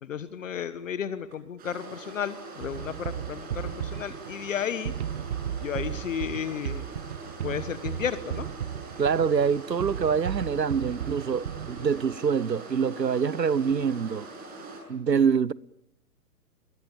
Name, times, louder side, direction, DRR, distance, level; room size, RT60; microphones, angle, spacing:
voice 1, 0.0-4.9 5.6-6.8 7.4-8.5, left 8 dB, 50° left, 1.4 m, -33 dB
sound 1, 1.3-1.4 1.8-2.2 2.6-2.7 3.1-4.3 4.6-5.0 5.4-5.6 6.5-6.8 7.8-7.9 9.1-9.4 11.0-11.1 11.4-11.7, right 4 dB, 60° right, 5.9 m, -58 dB
sound 2, 1.6-14.8, right 3 dB, 20° right, 7.2 m, -43 dB
sound 3, 2.6-12.2, right 10 dB, 40° right, 0.9 m, -35 dB
voice 2, 9.0-14.3 14.9-15.5, right 6 dB, 80° right, 0.9 m, -25 dB
29.5 x 22.0 x 7.2 m
figure-of-eight pair, 120°, 49 cm